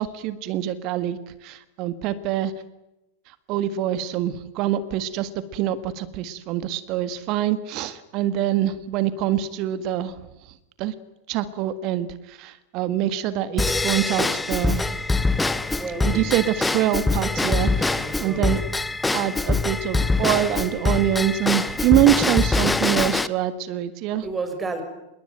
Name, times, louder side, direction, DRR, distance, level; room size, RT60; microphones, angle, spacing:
voice 1, 0.0-2.5 3.5-10.1 10.8-10.9 11.3-15.0 16.0-18.6 19.1-24.2, right 12 dB, 40° right, 13 dB, 1.6 m, -25 dB
Drum kit / Drum / Bell, 13.6-23.3, left 3 dB, 10° left, 1.0 m, -24 dB
voice 2, 15.7-16.4 17.4-18.7 24.2-24.8, right 3 dB, 15° right, 8 dB, 6.3 m, -33 dB
27.0 x 22.0 x 9.2 m, 0.92 s
figure-of-eight pair, 90°, 0 cm